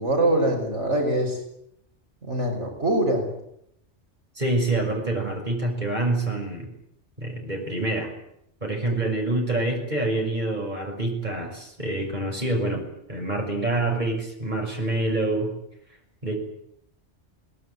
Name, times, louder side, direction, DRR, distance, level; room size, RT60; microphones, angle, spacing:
voice 1, 0.0-1.4 2.2-3.3 8.9-9.0, right 1 dB, 80° right, 2 dB, 5.6 m, -23 dB
voice 2, 4.3-6.7 7.2-8.1 8.6-12.8 13.1-15.5 16.2-16.4, right 2 dB, 40° right, 2 dB, 6.6 m, -26 dB
22.5 x 20.0 x 9.5 m, 0.75 s
omnidirectional pair, 1.2 m